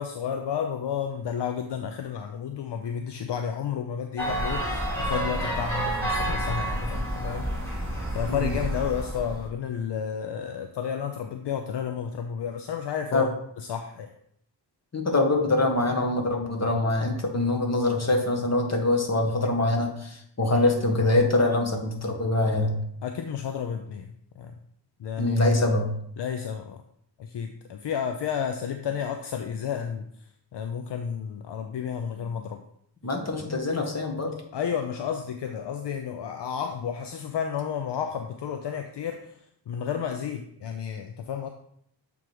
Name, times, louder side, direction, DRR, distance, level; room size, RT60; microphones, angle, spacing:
voice 1, 0.0-13.3 13.6-14.1 23.0-24.5 25.0-25.4 26.2-26.8 27.2-30.0 30.5-32.6 34.5-39.4 39.7-41.5, left 7 dB, 65° left, 6 dB, 0.6 m, -32 dB
sound 1, 4.2-9.5, right 1 dB, 5° left, 2.9 m, -29 dB
voice 2, 14.9-22.7 25.2-25.9 33.0-34.4, left 2 dB, 35° left, 2 dB, 1.7 m, -24 dB
7.4 x 3.6 x 4.7 m, 0.69 s
cardioid pair, 60°, 45 cm